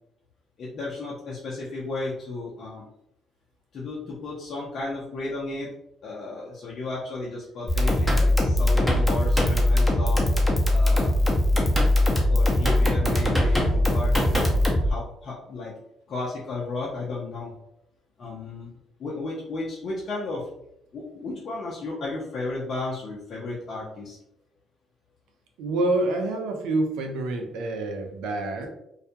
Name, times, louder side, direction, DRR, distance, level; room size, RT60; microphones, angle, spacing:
voice 1, 0.6-2.9 3.7-5.7 6.0-10.2 10.7-11.1 12.3-15.7 16.1-17.5 18.2-18.7 19.0-20.5 20.9-24.2, left 3 dB, 55° left, -5 dB, 0.6 m, -34 dB
sound 1, 7.7-14.9, left 1 dB, 5° left, 0.7 m, -21 dB
voice 2, 25.6-28.7, right 2 dB, 85° right, 3 dB, 0.5 m, -27 dB
2.3 x 2.1 x 2.7 m, 0.78 s
supercardioid pair, 70°, 0 cm